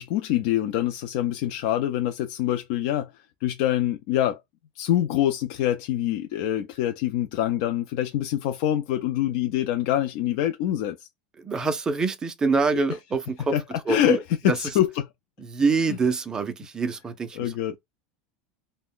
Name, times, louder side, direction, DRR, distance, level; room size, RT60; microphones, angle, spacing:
voice 1, 0.0-4.4 4.8-11.1 13.5-13.6 13.9-14.2 14.6-15.1 17.4-17.8, left 12 dB, 55° left, 0.3 m, -25 dB
voice 2, 11.4-13.5 13.9-14.2 14.4-14.6 15.4-17.8, right 4 dB, 15° right, 0.4 m, -25 dB
2.4 x 2.1 x 3.6 m
supercardioid pair, 160°, 5 cm